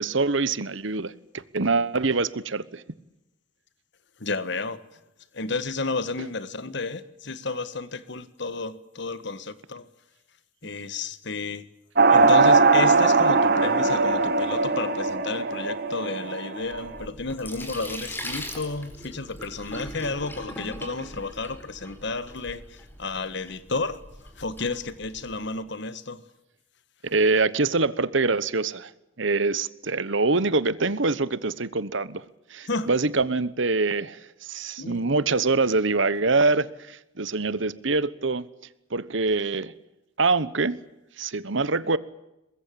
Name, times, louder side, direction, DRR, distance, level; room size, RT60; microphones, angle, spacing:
voice 1, 0.0-2.8 27.0-28.9 29.2-32.2 32.5-38.5 38.9-39.7 40.2-40.8 41.2-42.0, right 3 dB, 65° right, 1.1 m, -24 dB
voice 2, 4.2-4.8 5.3-9.9 10.6-11.7 12.1-24.0 24.4-26.2 32.7-32.9 34.8-35.1, left 3 dB, 55° left, 1.6 m, -32 dB
sound 1, 12.0-16.9, right 3 dB, 45° right, 1.7 m, -20 dB
Sink (filling or washing), 16.6-25.4, left 1 dB, 10° left, 4.5 m, -40 dB
23.5 x 21.0 x 8.6 m
head